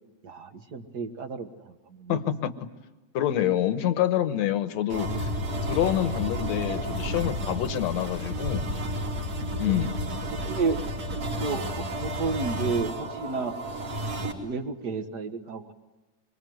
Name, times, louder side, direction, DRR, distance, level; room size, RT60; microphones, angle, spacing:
voice 1, 0.2-2.2 9.6-9.9 10.3-10.8 11.4-13.6 14.4-15.7, right 4 dB, 45° right, 8 dB, 1.5 m, -32 dB
voice 2, 2.1-2.5 3.1-5.3 5.7-8.7 9.6-9.9, left 11 dB, 70° left, 11 dB, 2.3 m, -26 dB
sound 1, 4.9-14.3, equal, 60° right, 4.4 m, -31 dB
25.5 x 24.0 x 9.3 m, 1.1 s
omnidirectional pair, 3.3 m